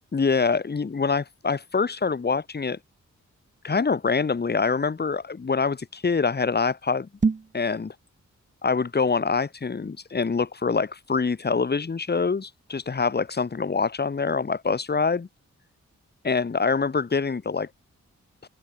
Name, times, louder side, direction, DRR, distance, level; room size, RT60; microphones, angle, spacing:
voice 1, 0.1-2.8 3.6-7.1 7.5-7.9 8.6-15.3 16.2-17.7, left 5 dB, 35° left, 0.9 m, -25 dB
sound 1, 7.1-7.6, right 4 dB, 25° right, 0.5 m, -25 dB
open air
cardioid pair, 50°, 30 cm